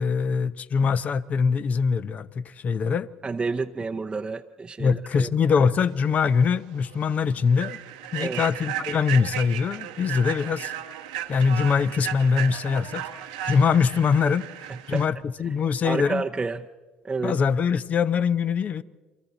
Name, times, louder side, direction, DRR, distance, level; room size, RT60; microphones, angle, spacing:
voice 1, 0.0-3.1 4.8-7.8 8.1-10.7 11.3-13.0 13.5-14.5 14.9-16.2 17.2-18.8, left 6 dB, 45° left, 0.8 m, -23 dB
voice 2, 3.2-5.3 8.2-8.4 14.7-15.1 15.8-16.7 17.0-17.4, right 4 dB, 25° right, 0.7 m, -30 dB
Human voice / Train, 6.2-6.3 6.8-7.0 7.5-15.1, right 11 dB, 85° right, 1.2 m, -35 dB
30.0 x 23.5 x 4.0 m
hypercardioid pair, 65°, 4 cm